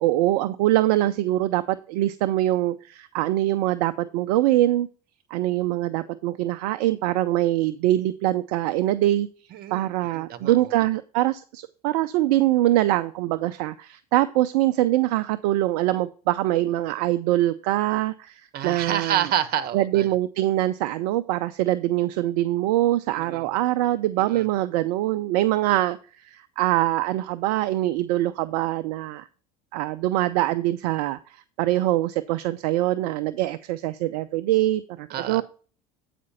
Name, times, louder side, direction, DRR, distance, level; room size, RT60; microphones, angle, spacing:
voice 1, 0.0-4.9 5.3-9.3 9.7-19.3 19.7-29.2 29.7-35.4, right 15 dB, 65° right, 11 dB, 0.5 m, -23 dB
voice 2, 9.5-10.5 18.5-20.1 23.2-23.5 24.3-24.4 35.1-35.4, right 10 dB, 50° right, 13 dB, 1.1 m, -28 dB
8.6 x 5.1 x 5.4 m, 0.38 s
hypercardioid pair, 75°, 20 cm